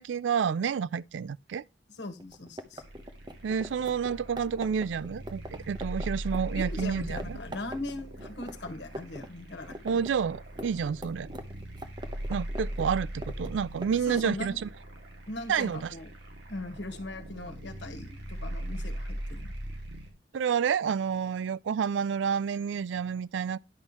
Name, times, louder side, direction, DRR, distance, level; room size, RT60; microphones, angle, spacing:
voice 1, 0.0-1.6 3.4-5.4 5.7-7.4 9.8-11.3 12.3-14.7 15.5-15.9 20.3-23.6, right 7 dB, 80° right, 0.3 m, -29 dB
voice 2, 2.0-2.8 6.5-10.1 13.9-14.6 15.3-16.1 16.5-19.5, left 2 dB, 70° left, 1.5 m, -40 dB
sound 1, 2.2-6.9 7.2-7.3 7.5-9.3 9.5-14.3, equal, 25° right, 0.9 m, -41 dB
sound 2, 2.8-20.1, right 1 dB, 65° right, 2.1 m, -40 dB
10.5 x 5.5 x 3.0 m
head